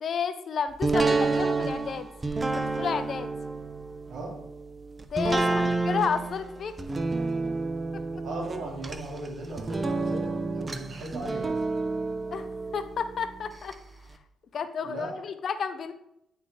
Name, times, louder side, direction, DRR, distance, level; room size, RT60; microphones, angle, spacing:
voice 1, 0.0-2.1 2.5-3.3 5.1-6.7 7.9-8.2 12.3-12.5 12.7-13.8 14.5-15.9, left 6 dB, 55° left, 11 dB, 0.5 m, -31 dB
sound 1, 0.8-13.7 14.1-14.2, right 3 dB, 25° right, 0.6 m, -30 dB
voice 2, 4.1-4.5 5.4-5.7 8.2-11.6 14.8-15.2, right 2 dB, 60° right, -1 dB, 2.1 m, -37 dB
9.5 x 4.2 x 3.2 m, 0.80 s
cardioid pair, 90°, 0 cm